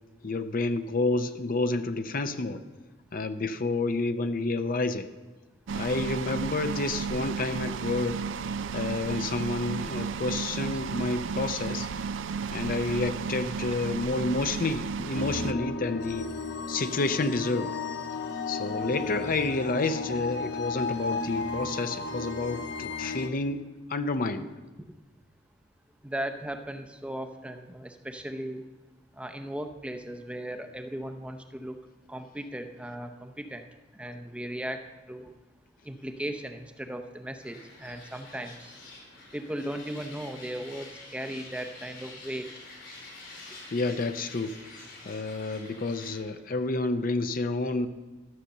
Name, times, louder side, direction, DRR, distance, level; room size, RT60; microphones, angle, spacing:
voice 1, 0.2-2.7 3.1-5.1 5.7-8.3 8.7-11.9 12.5-16.3 16.7-17.8 18.5-23.6 23.9-24.5 43.7-47.9, left 3 dB, 50° left, 9 dB, 0.6 m, -29 dB
sound 1, 5.7-15.5, right 5 dB, 80° right, 0.4 m, -33 dB
sound 2, 15.1-23.3, left 4 dB, 65° left, 0.9 m, -34 dB
voice 2, 26.0-28.6 29.2-31.8 32.1-33.6 34.0-34.8 35.1-35.3 35.9-38.7 39.3-40.9 41.1-42.5, right 1 dB, 5° right, 6 dB, 0.6 m, -37 dB
sound 3, 37.4-46.2, left 2 dB, 85° left, 4.9 m, -47 dB
13.0 x 6.6 x 6.7 m, 1.2 s
head